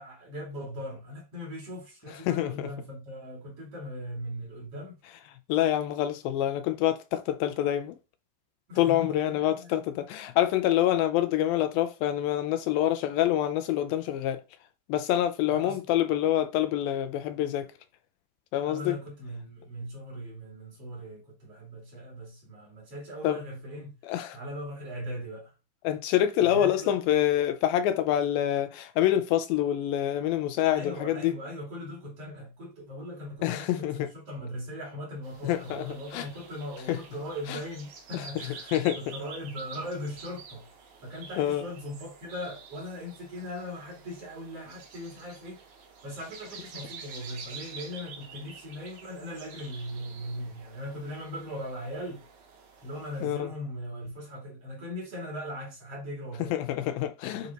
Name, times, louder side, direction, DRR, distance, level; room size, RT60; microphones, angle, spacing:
voice 1, 0.0-5.0 8.7-10.0 15.5-15.8 18.6-23.9 24.3-25.5 26.4-27.0 30.7-40.7 41.0-45.6 46.0-52.2 52.8-56.6 57.3-57.5, equal, 45° right, 2.7 m, -39 dB
voice 2, 2.3-2.7 5.5-8.0 8.8-14.4 14.9-17.7 18.5-19.0 23.2-23.4 24.1-24.4 25.8-31.3 33.4-34.1 35.4-36.3 36.9-37.0 37.5-37.6 38.1-39.1 41.4-41.6 53.2-53.5 56.5-57.5, left 12 dB, 80° left, 2.3 m, -26 dB
sound 1, 35.2-53.3, right 5 dB, 60° right, 2.6 m, -48 dB
9.2 x 3.3 x 3.9 m
omnidirectional pair, 4.3 m